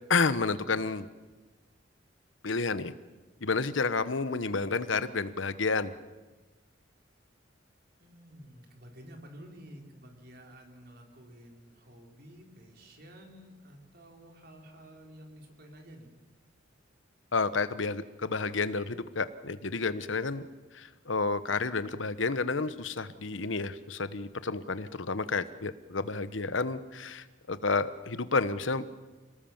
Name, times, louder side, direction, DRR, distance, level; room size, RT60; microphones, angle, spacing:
voice 1, 0.1-1.1 2.4-2.9 3.4-5.9 17.3-20.5 20.7-28.9, left 4 dB, 85° left, 14 dB, 1.1 m, -30 dB
voice 2, 8.0-16.1, equal, 55° right, 2 dB, 4.3 m, -51 dB
28.0 x 19.0 x 7.3 m, 1.2 s
head